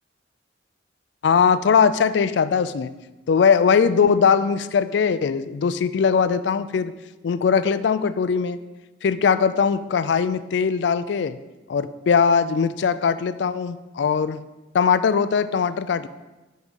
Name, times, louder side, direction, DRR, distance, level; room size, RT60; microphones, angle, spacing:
voice 1, 1.2-2.9 3.3-6.9 7.2-8.6 9.0-11.4 11.7-14.4 14.7-16.1, left 6 dB, 70° left, 14 dB, 0.3 m, -20 dB
5.5 x 5.1 x 6.2 m, 1.1 s
head